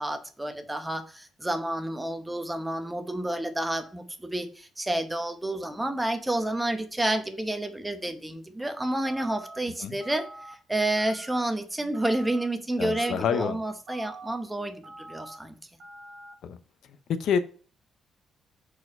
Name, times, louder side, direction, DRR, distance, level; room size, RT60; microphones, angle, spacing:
voice 1, 0.0-15.6, right 1 dB, 10° right, 0.9 m, -30 dB
sound 1, 9.0-9.6 10.0-10.5 11.0-11.5 11.9-12.5 12.9-13.4 13.9-14.4 14.8-15.4 15.8-16.3, right 2 dB, 60° right, 1.3 m, -44 dB
voice 2, 12.8-13.6 16.4-16.6 17.2-17.4, left 7 dB, 70° left, 0.5 m, -27 dB
4.6 x 4.2 x 5.2 m
cardioid pair, 90°, 0 cm